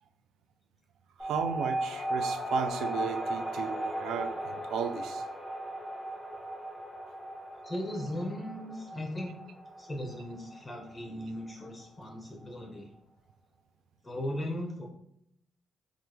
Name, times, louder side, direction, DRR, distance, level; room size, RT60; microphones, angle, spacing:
sound 1, 1.2-12.1, right 1 dB, ahead, 0.7 m, -36 dB
voice 1, 1.2-5.2, right 7 dB, 75° right, 8 dB, 0.3 m, -35 dB
voice 2, 7.6-9.3 9.8-12.9 14.0-14.9, left 1 dB, 15° left, 0 dB, 1.0 m, -37 dB
3.4 x 2.4 x 3.1 m, 0.75 s
cardioid pair, 90°, 0 cm